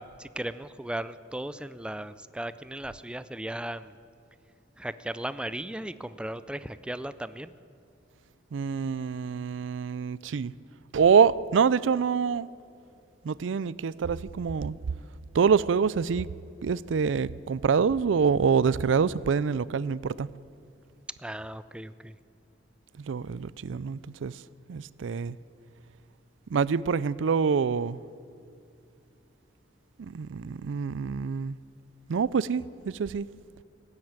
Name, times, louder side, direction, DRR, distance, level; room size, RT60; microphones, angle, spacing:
voice 1, 0.0-3.9 4.8-7.5 21.2-22.1, right 1 dB, 5° right, 0.4 m, -36 dB
voice 2, 8.5-10.5 10.9-12.5 13.2-14.8 15.3-16.3 16.6-20.3 23.0-24.4 24.7-25.4 26.5-28.0 30.0-31.6 32.1-33.3, right 6 dB, 85° right, 0.4 m, -26 dB
17.0 x 9.6 x 8.9 m
head